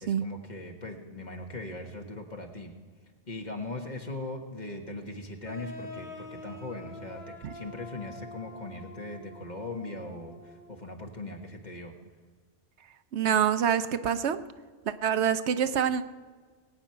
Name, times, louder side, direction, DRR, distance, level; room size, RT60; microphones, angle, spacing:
voice 1, 0.0-2.7 3.3-11.9, left 2 dB, 40° left, 3 dB, 1.6 m, -40 dB
sound 1, 5.4-11.0, left 1 dB, 65° left, 1.8 m, -46 dB
voice 2, 13.1-14.4 14.9-16.0, right 8 dB, 75° right, 11 dB, 1.0 m, -26 dB
21.0 x 8.9 x 5.8 m, 1.5 s
omnidirectional pair, 1.2 m